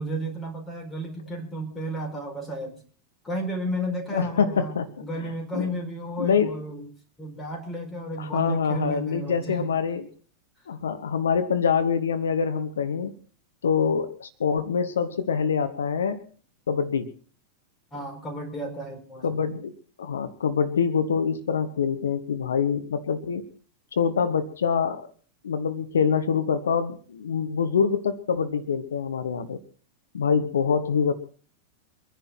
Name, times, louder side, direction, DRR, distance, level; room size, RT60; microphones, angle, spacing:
voice 1, 0.0-2.8 3.2-6.9 7.2-9.7 17.9-19.4, right 1 dB, 15° left, 3 dB, 4.4 m, -33 dB
voice 2, 4.1-4.9 5.2-5.7 6.2-6.6 8.2-10.1 10.7-13.1 13.6-16.2 16.7-17.1 19.2-19.7 20.0-23.4 23.9-25.1 25.4-29.6 30.1-31.1, left 6 dB, 65° left, 10 dB, 1.1 m, -25 dB
24.0 x 10.5 x 4.4 m, 0.40 s
figure-of-eight pair, 90°, 0 cm